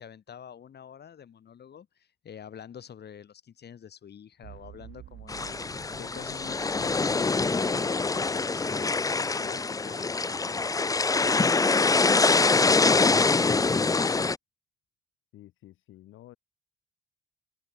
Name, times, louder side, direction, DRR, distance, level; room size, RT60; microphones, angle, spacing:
voice 1, 0.0-11.5 11.7-13.4, left 8 dB, 55° left, 6.6 m, -47 dB
sound 1, 4.4-8.6, right 13 dB, 80° right, 3.9 m, -50 dB
sound 2, 5.3-14.4, left 4 dB, 15° left, 0.6 m, -24 dB
voice 2, 15.3-16.4, left 14 dB, 85° left, 4.6 m, -51 dB
cardioid pair, 90°, 20 cm